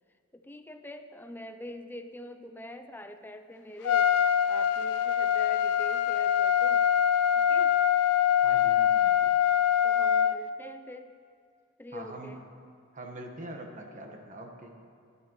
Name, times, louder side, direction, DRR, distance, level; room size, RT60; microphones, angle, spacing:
voice 1, 0.3-6.9 7.4-7.8 9.8-11.1 11.8-12.4, left 1 dB, 10° left, 8 dB, 0.5 m, -44 dB
Trumpet, 3.8-10.4, left 9 dB, 75° left, 0.4 m, -24 dB
voice 2, 8.4-9.3 11.9-12.4 12.9-14.8, right 1 dB, 35° right, 2 dB, 1.3 m, -43 dB
19.0 x 12.5 x 3.1 m, 2.2 s
head